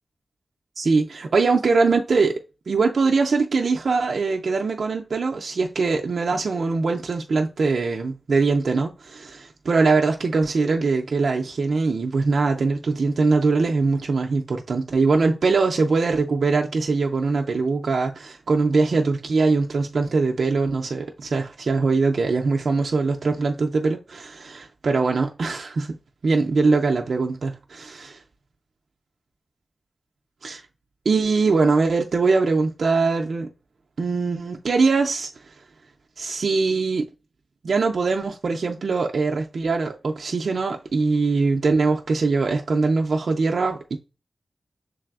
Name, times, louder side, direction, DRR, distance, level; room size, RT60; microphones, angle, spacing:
voice 1, 0.8-2.4 2.7-26.0 26.2-28.2 30.4-30.6 31.1-33.5 34.0-35.3 36.2-37.1 37.6-44.0, right 4 dB, 75° right, 0.4 m, -22 dB
6.7 x 3.2 x 2.3 m
wide cardioid pair, 110°, 0 cm